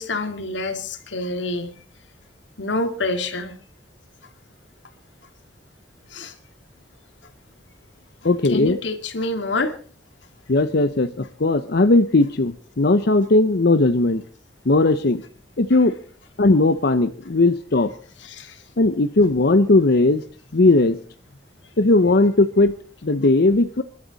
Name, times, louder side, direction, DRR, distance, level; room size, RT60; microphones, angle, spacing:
voice 1, 0.0-1.7 2.6-3.6 6.1-6.4 8.4-9.7 15.7-15.8 18.2-18.6, left 2 dB, 85° left, 7 dB, 2.3 m, -27 dB
voice 2, 8.2-8.8 10.5-11.1 11.4-14.2 14.7-15.2 15.6-15.9 16.4-17.9 18.8-20.2 20.5-21.0 21.8-22.7 23.0-23.8, left 2 dB, 60° left, 9 dB, 0.8 m, -17 dB
28.0 x 12.0 x 4.0 m, 0.43 s
head